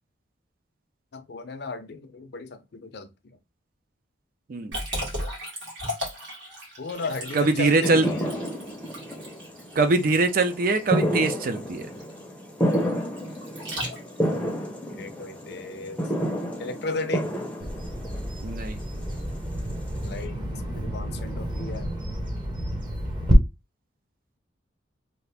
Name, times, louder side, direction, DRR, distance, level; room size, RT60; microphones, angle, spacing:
voice 1, 1.1-3.1 6.8-8.3 13.8-14.0 15.0-16.0 16.6-17.3 20.0-21.9, left 3 dB, 55° left, 0.5 m, -35 dB
Liquid, 4.7-14.4, equal, 70° right, 1.6 m, -36 dB
sound 1, 6.9-20.2, equal, 5° left, 0.6 m, -31 dB
voice 2, 7.3-8.1 9.8-11.9 18.4-18.8, right 3 dB, 45° right, 0.4 m, -22 dB
Bird vocalization bird call bird song, 17.6-23.3, equal, 20° right, 0.8 m, -31 dB
2.8 x 2.5 x 3.3 m
head